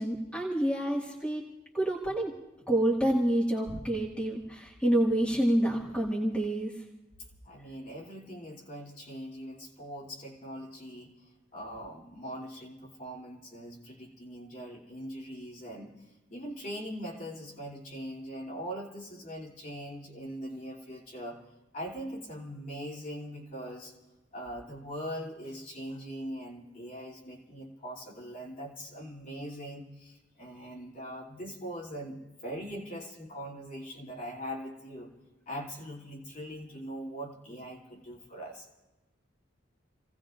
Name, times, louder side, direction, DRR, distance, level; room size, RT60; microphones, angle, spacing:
voice 1, 0.0-1.4 1.7-2.3 2.7-6.8, right 1 dB, 5° left, -4 dB, 1.9 m, -28 dB
voice 2, 7.4-11.1 11.5-15.9 16.3-21.4 21.7-23.9 24.3-35.1 35.5-38.7, equal, 45° left, -4 dB, 3.0 m, -41 dB
29.5 x 18.0 x 2.6 m, 1.1 s
head